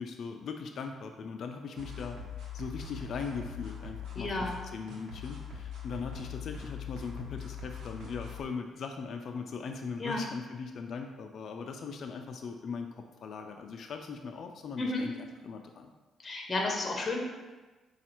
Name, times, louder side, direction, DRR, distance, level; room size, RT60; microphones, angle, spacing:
voice 1, 0.0-2.2 2.5-15.9, left 5 dB, 60° left, 4 dB, 0.4 m, -40 dB
sound 1, 1.8-8.4, left 6 dB, 70° right, 1.1 m, -42 dB
voice 2, 4.1-4.5 10.0-10.2 14.8-15.1 16.2-17.2, left 2 dB, 25° left, 0 dB, 0.8 m, -32 dB
5.0 x 2.4 x 4.4 m, 1.2 s
cardioid pair, 90°, 0 cm